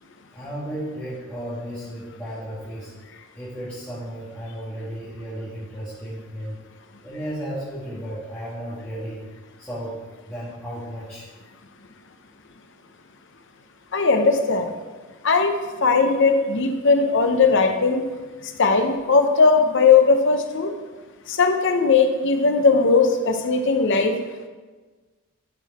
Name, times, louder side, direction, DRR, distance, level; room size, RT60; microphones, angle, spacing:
voice 1, 0.3-2.9 3.3-6.6 7.0-9.2 9.6-10.0 10.3-11.3, equal, 10° left, -12 dB, 1.6 m, -34 dB
voice 2, 13.9-14.7 15.2-15.5 15.8-18.0 18.6-20.7 21.3-24.1, left 4 dB, 55° left, 5 dB, 0.8 m, -18 dB
11.5 x 4.7 x 4.2 m, 1.3 s
head